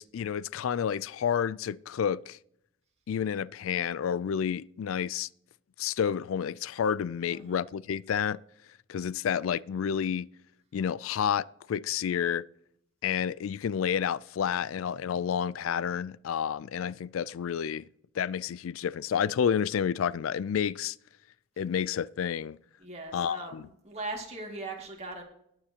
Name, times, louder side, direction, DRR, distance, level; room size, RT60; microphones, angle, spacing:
voice 1, 0.0-2.4 3.1-5.3 5.8-8.4 8.9-10.3 10.7-12.4 13.0-17.8 18.1-21.0 21.6-22.6 23.1-23.7, left 8 dB, 80° left, 0.3 m, -30 dB
voice 2, 22.8-23.5 23.8-25.2, right 2 dB, 30° right, 2.2 m, -39 dB
20.5 x 7.4 x 2.9 m
head